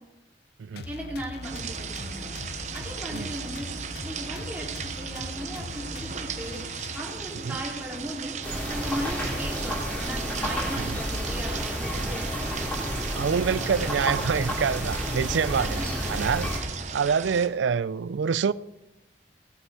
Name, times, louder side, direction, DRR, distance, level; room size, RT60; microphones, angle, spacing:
sound 1, 0.8-7.5, left 3 dB, 60° left, 0.7 m, -41 dB
voice 1, 0.8-2.2 2.7-3.7 4.0-6.6 6.9-8.3 8.7-12.3 15.6-16.3, equal, 10° right, 3.1 m, -37 dB
sound 2, 1.4-17.5, right 6 dB, 40° right, 0.8 m, -37 dB
sound 3, 8.4-16.6, equal, 10° left, 3.3 m, -30 dB
voice 2, 13.1-15.8 16.1-16.5 16.9-18.5, right 6 dB, 85° right, 0.4 m, -26 dB
17.5 x 8.1 x 5.6 m
head